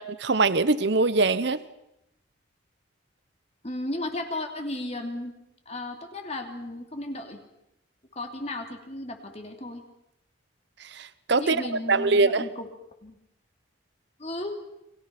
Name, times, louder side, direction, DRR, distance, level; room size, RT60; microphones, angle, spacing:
voice 1, 0.0-1.6 10.8-11.6 11.9-12.4, right 3 dB, 55° right, 15 dB, 0.8 m, -23 dB
voice 2, 3.6-5.3 5.7-7.4 8.1-9.8 11.4-12.7 13.0-13.2 14.2-14.5, left 1 dB, 30° left, 4 dB, 2.8 m, -34 dB
29.5 x 22.5 x 5.9 m, 0.87 s
head